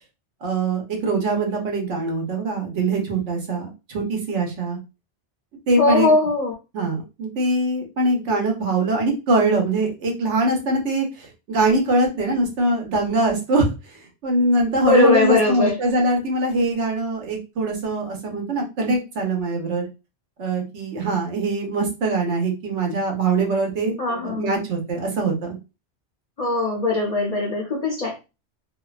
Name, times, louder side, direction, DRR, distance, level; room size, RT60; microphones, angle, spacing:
voice 1, 0.4-4.8 5.7-6.1 6.7-13.7 14.2-19.9 20.4-23.9 24.2-25.6, right 2 dB, 80° right, 1.1 m, -22 dB
voice 2, 5.8-6.5 14.9-15.8 24.0-24.5 26.4-28.2, left 3 dB, 50° left, 0.4 m, -20 dB
2.6 x 2.1 x 2.3 m
omnidirectional pair, 1.2 m